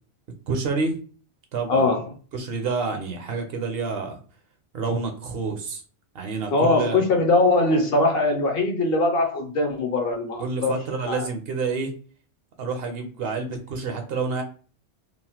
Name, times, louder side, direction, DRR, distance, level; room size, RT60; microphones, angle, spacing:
voice 1, 0.5-1.0 1.5-1.9 2.3-4.2 4.7-5.8 6.1-7.0 10.4-11.9 12.6-14.4, right 4 dB, 65° right, 4 dB, 0.7 m, -28 dB
voice 2, 1.7-2.1 6.5-10.7 11.0-11.3, left 2 dB, 65° left, 3 dB, 0.7 m, -21 dB
3.0 x 2.0 x 2.8 m, 0.39 s
omnidirectional pair, 1.2 m